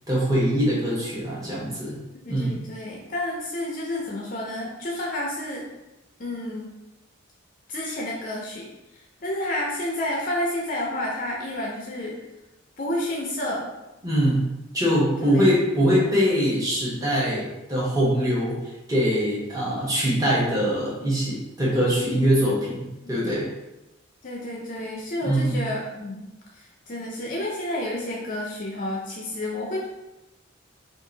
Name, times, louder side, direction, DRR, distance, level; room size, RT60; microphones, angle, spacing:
voice 1, 0.1-2.0 2.3-2.6 14.0-14.5 14.7-23.5 25.2-25.6, equal, 15° right, -7 dB, 0.9 m, -23 dB
voice 2, 2.2-5.7 6.2-6.7 7.7-12.2 12.8-13.7 15.2-15.5 23.0-23.4 24.2-26.2 26.5-29.9, left 1 dB, 40° left, -3 dB, 0.5 m, -30 dB
2.8 x 2.5 x 3.8 m, 0.99 s
head